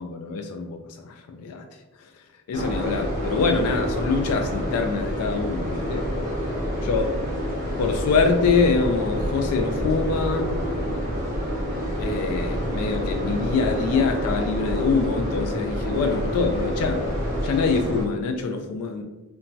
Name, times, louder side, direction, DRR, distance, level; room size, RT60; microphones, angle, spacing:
voice 1, 0.0-1.6 2.0-2.1 2.5-6.1 6.8-7.2 7.8-10.5 12.0-17.1 17.4-19.0, left 4 dB, 75° left, 5 dB, 0.3 m, -25 dB
sound 1, 2.5-18.1, equal, 45° right, 1.0 m, -28 dB
2.9 x 2.2 x 2.6 m, 1.1 s
head